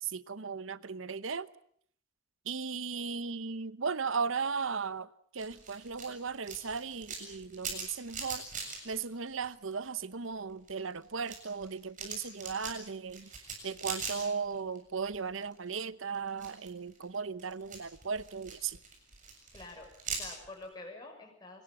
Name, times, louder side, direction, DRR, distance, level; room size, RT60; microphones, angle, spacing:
voice 1, 0.0-1.5 2.4-8.4 8.8-13.3 13.6-18.8, right 5 dB, 90° right, 0.9 m, -36 dB
sound 1, 5.4-10.0 10.3-14.8 15.1-15.7 16.1-20.7, right 5 dB, 40° right, 7.2 m, -42 dB
voice 2, 19.5-21.6, left 2 dB, 20° left, 6.4 m, -48 dB
27.0 x 20.0 x 7.9 m
head